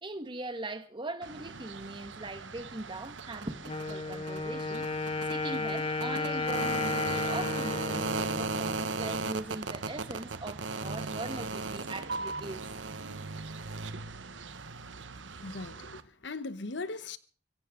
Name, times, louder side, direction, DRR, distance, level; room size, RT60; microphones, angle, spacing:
voice 1, 0.0-12.6, right 2 dB, 25° right, 1.6 m, -41 dB
sound 1, 1.2-16.0, right 3 dB, 90° right, 1.2 m, -37 dB
Wind instrument woodwind instrument, 3.6-9.4, left 3 dB, 30° left, 1.3 m, -34 dB
voice 2, 15.3-17.2, left 3 dB, 70° left, 1.0 m, -39 dB
24.0 x 16.0 x 3.8 m
head